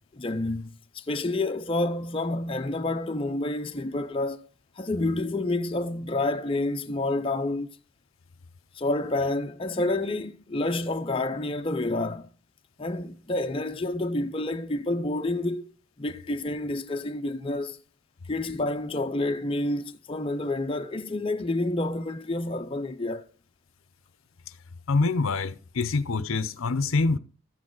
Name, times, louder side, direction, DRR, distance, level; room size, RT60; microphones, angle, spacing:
voice 1, 0.0-4.4 4.8-7.7 8.7-12.3 12.8-15.7 16.0-17.8 18.3-23.2, left 2 dB, 25° left, 0.6 m, -29 dB
voice 2, 24.9-27.2, left 3 dB, 70° left, 0.6 m, -25 dB
13.5 x 8.7 x 3.9 m
head